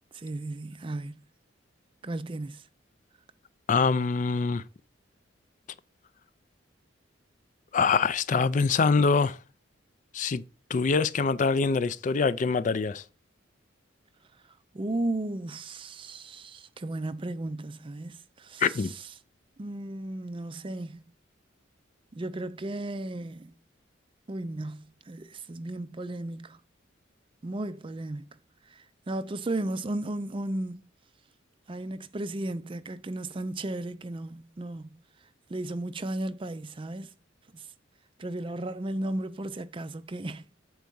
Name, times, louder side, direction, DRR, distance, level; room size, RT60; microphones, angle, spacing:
voice 1, 0.1-1.2 2.0-2.7 14.4-19.1 19.6-21.0 22.1-23.5 24.3-26.6 27.4-30.9 31.7-35.0 35.5-37.1 37.5-37.7 38.2-40.5, right 1 dB, 25° right, 0.4 m, -35 dB
voice 2, 3.7-4.6 7.7-9.4 10.1-10.4 10.7-13.0 18.6-18.9, left 4 dB, 40° left, 0.4 m, -24 dB
7.4 x 4.6 x 5.3 m
head